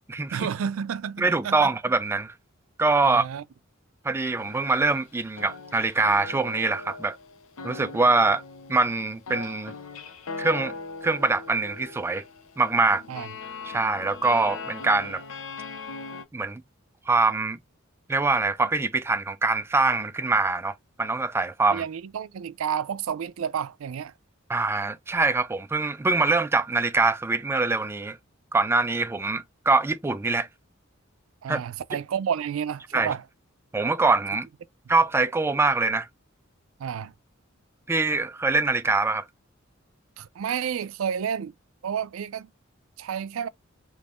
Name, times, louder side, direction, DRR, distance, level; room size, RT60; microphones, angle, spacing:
voice 1, 0.3-1.7 3.0-3.4 13.1-13.3 21.7-24.1 31.4-33.2 36.8-37.1 40.2-41.5 41.8-42.5 43.0-43.5, right 8 dB, 90° right, 0.4 m, -30 dB
voice 2, 1.2-2.3 2.8-3.2 4.0-7.2 7.6-8.4 8.7-9.8 10.4-10.8 11.0-12.2 12.6-13.0 13.7-15.2 16.3-16.6 17.1-17.6 18.1-21.8 24.5-28.2 28.5-30.5 31.5-31.6 32.9-33.1 33.7-34.5 34.9-36.1 37.9-39.2, right 3 dB, 10° right, 0.3 m, -24 dB
sound 1, 4.4-5.1 5.4-16.2, left 4 dB, 80° left, 0.6 m, -40 dB
3.5 x 3.0 x 2.3 m
head